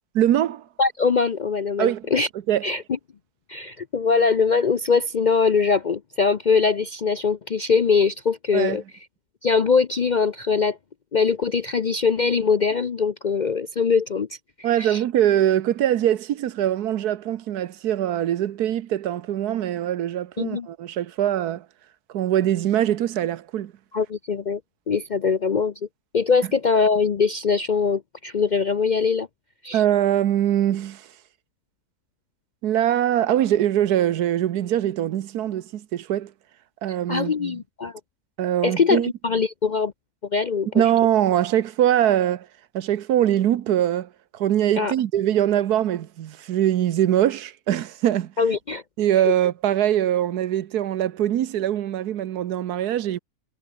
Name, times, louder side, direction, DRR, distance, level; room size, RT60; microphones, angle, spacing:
voice 1, 0.1-0.6 1.8-2.1 2.5-2.7 8.5-8.8 14.6-21.6 22.1-23.7 29.7-31.1 32.6-36.3 36.8-37.6 38.4-39.1 40.7-42.5 42.7-48.3 49.0-53.2, right 11 dB, 90° right, 1.4 m, -22 dB
voice 2, 0.8-2.3 2.6-2.8 3.5-8.8 9.4-10.8 11.1-14.3 14.6-15.0 20.4-20.7 23.9-24.6 24.9-25.7 26.1-29.3 29.6-29.8 37.1-38.0 38.6-39.9 40.3-40.8 44.8-44.9 48.4-48.8 49.3-49.4, left 5 dB, 55° left, 0.5 m, -22 dB
omnidirectional pair, 1.6 m